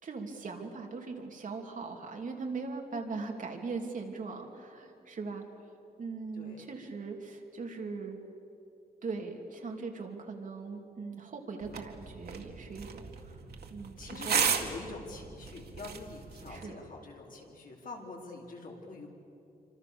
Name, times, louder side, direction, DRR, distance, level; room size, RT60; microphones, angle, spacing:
voice 1, 0.0-5.4 6.0-8.2 9.0-13.4 13.7-14.8 16.5-16.8, right 4 dB, 55° right, 2 dB, 3.0 m, -40 dB
voice 2, 6.4-6.7 14.0-19.1, left 3 dB, 60° left, 0 dB, 4.4 m, -45 dB
sound 1, 11.6-16.6, right 6 dB, 85° right, 2.1 m, -35 dB
27.5 x 25.5 x 7.1 m, 2.8 s
wide cardioid pair, 175°, 16 cm